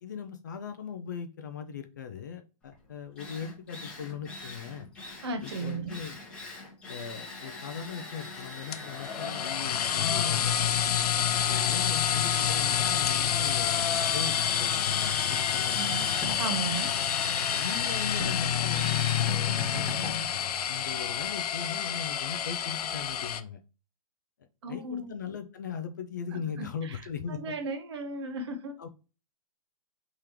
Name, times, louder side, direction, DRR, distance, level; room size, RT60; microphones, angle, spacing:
voice 1, 0.0-4.9 5.4-6.2 6.9-10.8 11.3-16.2 17.6-20.3 20.7-23.6 24.7-27.5 28.8-28.9, left 7 dB, 30° left, 0.4 m, -39 dB
Drill, 2.7-2.8 3.2-21.3, left 2 dB, 5° left, 0.9 m, -40 dB
voice 2, 5.2-6.0 15.7-16.1 16.4-16.9 24.6-25.1 26.3-27.0 27.3-28.8, right 3 dB, 45° right, 0.8 m, -35 dB
sound 1, 8.7-23.4, left 9 dB, 80° left, 0.5 m, -28 dB
4.9 x 3.6 x 3.0 m
hypercardioid pair, 170°, 19 cm